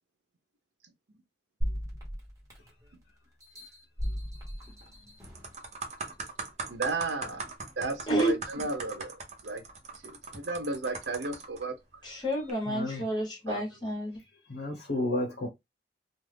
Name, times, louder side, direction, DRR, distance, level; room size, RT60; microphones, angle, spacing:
sound 1, 1.6-2.9 3.4-5.5 6.1-6.2, equal, 20° right, 1.1 m, -36 dB
sound 2, 4.6-4.9 5.2-11.6 12.3-12.5, right 4 dB, 40° right, 0.7 m, -40 dB
voice 1, 6.7-7.4 7.8-9.6 10.0-11.8 13.5-13.6, right 3 dB, 80° right, 0.6 m, -34 dB
voice 2, 12.0-14.2, right 1 dB, 25° left, 1.2 m, -30 dB
voice 3, 12.7-13.0 14.5-15.5, left 1 dB, 75° left, 1.0 m, -31 dB
2.4 x 2.3 x 3.3 m
head